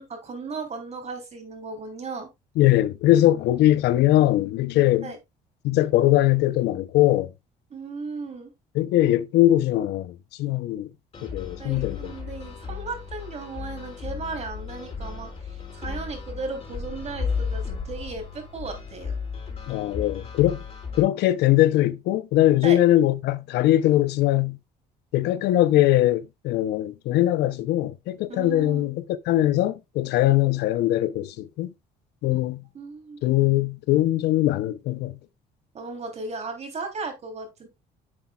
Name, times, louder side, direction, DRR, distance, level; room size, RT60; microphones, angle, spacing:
voice 1, 0.0-2.3 5.0-5.2 7.7-8.5 11.6-19.1 22.6-22.8 28.3-28.8 32.3-32.4 32.7-33.2 35.7-37.7, right 4 dB, 40° right, 3.4 m, -36 dB
voice 2, 2.6-5.1 5.6-7.3 8.7-10.9 11.2-12.1 19.7-20.6 21.0-24.6 25.1-31.7 32.2-32.6 33.2-35.2, left 14 dB, 80° left, 0.7 m, -21 dB
sound 1, 11.1-21.0, left 5 dB, 35° left, 5.0 m, -34 dB
10.0 x 7.3 x 2.4 m
cardioid pair, 110°, 17 cm